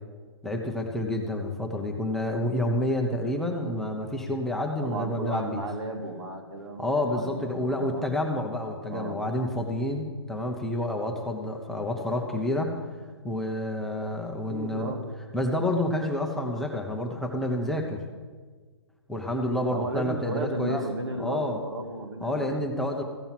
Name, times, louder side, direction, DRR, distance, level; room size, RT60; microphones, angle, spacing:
voice 1, 0.4-5.6 6.8-12.7 13.2-14.9 15.3-18.0 19.1-20.8 21.2-21.6 22.2-23.0, left 1 dB, ahead, 0 dB, 0.8 m, -29 dB
voice 2, 4.8-8.0 8.9-9.2 14.5-15.0 19.7-23.0, right 2 dB, 70° right, 3 dB, 2.2 m, -34 dB
15.0 x 5.4 x 7.5 m, 1.5 s
hypercardioid pair, 140°, 14 cm